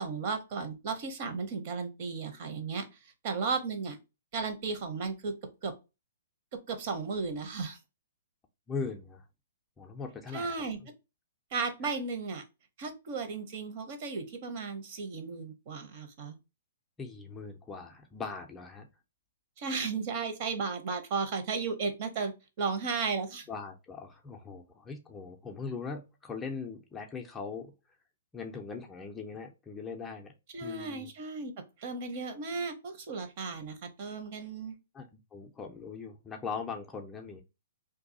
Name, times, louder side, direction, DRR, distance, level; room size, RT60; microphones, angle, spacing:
voice 1, 0.0-2.9 3.2-4.0 4.3-5.3 5.6-5.7 6.7-7.8 10.3-10.8 11.5-12.4 12.8-16.4 19.6-22.3 22.6-23.4 30.5-31.5 31.8-34.7, right 4 dB, 45° right, 7 dB, 0.8 m, -34 dB
voice 2, 8.7-9.2 9.8-10.5 17.0-18.9 23.5-27.7 28.3-30.3 30.6-31.1 34.9-37.4, left 5 dB, 10° left, 2 dB, 0.4 m, -40 dB
2.6 x 2.3 x 3.8 m, 0.27 s
hypercardioid pair, 145°, 0 cm